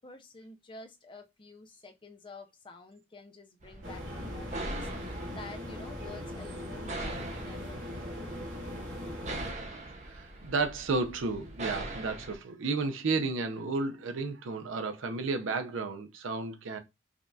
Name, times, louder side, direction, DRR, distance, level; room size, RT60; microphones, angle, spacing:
voice 1, 0.0-7.9 8.2-8.4, left 3 dB, 25° left, 0.4 m, -49 dB
sound 1, 3.6-12.3, right 2 dB, 35° right, 0.6 m, -42 dB
sound 2, 3.8-9.5, left 1 dB, 75° right, 1.8 m, -40 dB
voice 2, 10.1-16.8, right 3 dB, 90° right, 0.6 m, -32 dB
5.0 x 2.3 x 2.6 m
head